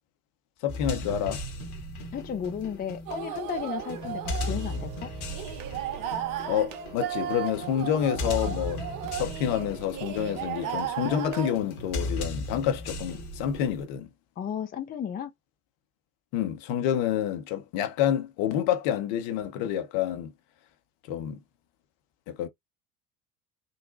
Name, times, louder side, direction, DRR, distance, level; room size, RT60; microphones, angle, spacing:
voice 1, 0.6-1.4 6.5-8.8 9.1-14.1 16.3-20.3 21.1-21.4 22.3-22.5, left 10 dB, 55° left, 0.8 m, -28 dB
sound 1, 0.7-13.8, left 1 dB, 70° left, 1.2 m, -36 dB
voice 2, 2.1-5.1 14.4-15.3, left 8 dB, 20° left, 0.5 m, -34 dB
sound 2, 3.1-11.5, right 9 dB, 45° right, 0.8 m, -35 dB
3.9 x 2.1 x 2.5 m
figure-of-eight pair, 65°, 45 cm